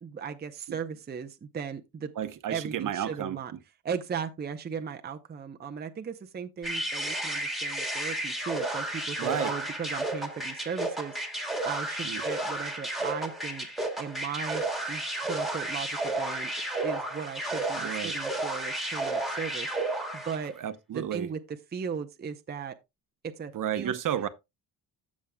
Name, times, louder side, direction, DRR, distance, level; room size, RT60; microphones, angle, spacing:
voice 1, 0.0-2.1 2.5-3.5 3.8-11.2 11.6-13.7 14.0-16.5 16.8-20.5 20.9-22.8 23.2-23.9, right 6 dB, 25° right, 0.6 m, -37 dB
voice 2, 2.2-3.4 9.2-9.5 12.0-12.2 17.8-18.2 20.6-21.3 23.5-24.3, right 10 dB, 50° right, 0.9 m, -32 dB
sound 1, 6.6-20.5, right 1 dB, ahead, 1.7 m, -32 dB
14.5 x 6.3 x 2.2 m
cardioid pair, 135°, 39 cm